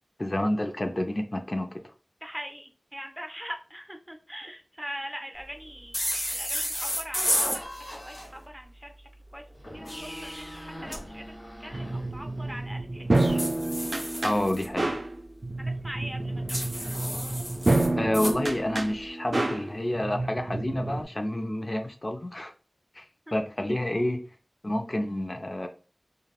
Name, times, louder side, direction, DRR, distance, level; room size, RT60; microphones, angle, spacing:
voice 1, 0.2-1.8 14.2-15.0 18.0-22.5 22.9-23.0 23.3-24.2 24.6-25.7, left 1 dB, 50° left, 5 dB, 0.4 m, -29 dB
voice 2, 2.2-6.0 6.3-7.7 8.0-9.4 9.7-9.9 10.2-13.0 15.6-16.6 23.3-23.4, equal, 15° right, 5 dB, 0.5 m, -41 dB
sound 1, 5.9-7.6 9.6-11.0 13.1-14.7 16.5-18.4, equal, 20° left, 0.7 m, -31 dB
sound 2, 7.5-8.4 9.5-12.6, equal, 85° left, 1.2 m, -43 dB
sound 3, 11.7-21.0, right 2 dB, 80° right, 0.4 m, -29 dB
3.3 x 2.2 x 2.3 m, 0.37 s
wide cardioid pair, 45°, 0 cm